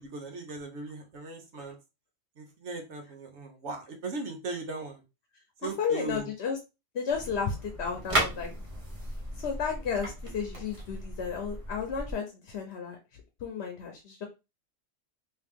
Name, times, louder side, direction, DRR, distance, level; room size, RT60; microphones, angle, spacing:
voice 1, 0.0-1.7 2.4-5.0 5.6-6.3, right 3 dB, 65° right, 3 dB, 1.2 m, -38 dB
voice 2, 5.6-6.6 6.9-8.5 9.4-13.0 13.4-14.2, left 6 dB, 60° left, 3 dB, 1.0 m, -33 dB
sound 1, 7.1-12.1, right 1 dB, 30° right, 0.8 m, -35 dB
3.2 x 2.9 x 3.5 m, 0.27 s
omnidirectional pair, 1.3 m